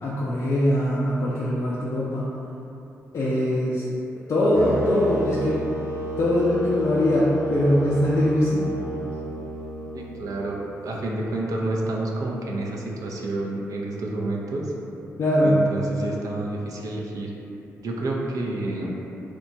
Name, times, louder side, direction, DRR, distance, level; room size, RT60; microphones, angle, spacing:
voice 1, 0.0-2.3 3.1-3.8 4.3-5.6 6.2-8.7 15.2-15.6, left 1 dB, 50° left, -7 dB, 0.4 m, -22 dB
sound 1, 4.5-10.6, right 1 dB, 40° right, 1.0 m, -31 dB
voice 2, 9.9-14.7 15.4-17.3 17.8-19.0, right 2 dB, 65° right, -2 dB, 0.4 m, -29 dB
2.9 x 2.1 x 2.6 m, 2.8 s
supercardioid pair, 45°, 6 cm